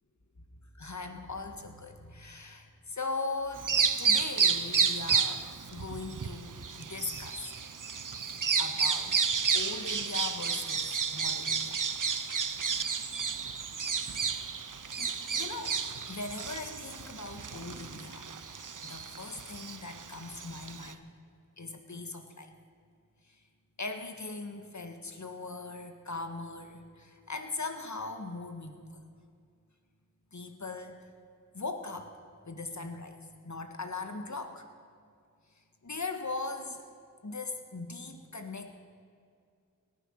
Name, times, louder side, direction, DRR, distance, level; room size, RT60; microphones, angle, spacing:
voice 1, 0.7-3.7 4.0-7.5 8.6-11.8 12.7-13.1 15.0-15.8 16.1-18.3 18.8-21.0 21.6-22.5 23.2-23.4 23.8-29.0 30.3-31.1 31.5-32.1 32.4-34.7 35.6-36.8 37.2-38.7, left 3 dB, 60° left, 6 dB, 1.6 m, -40 dB
Bird vocalization bird call bird song, 3.5-20.9, right 6 dB, 70° right, 0.7 m, -31 dB
18.0 x 11.0 x 6.5 m, 2.3 s
wide cardioid pair, 40°, 32 cm